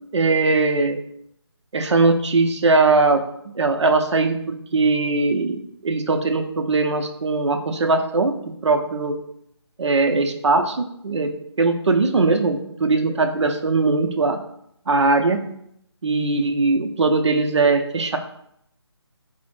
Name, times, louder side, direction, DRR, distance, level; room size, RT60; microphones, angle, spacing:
voice 1, 0.1-1.0 1.7-3.2 3.5-8.4 8.6-9.1 9.8-11.3 11.6-14.4 14.9-15.4 16.0-18.2, right 3 dB, 75° right, 5 dB, 0.5 m, -20 dB
4.1 x 2.0 x 3.2 m, 0.73 s
figure-of-eight pair, 165°, 15 cm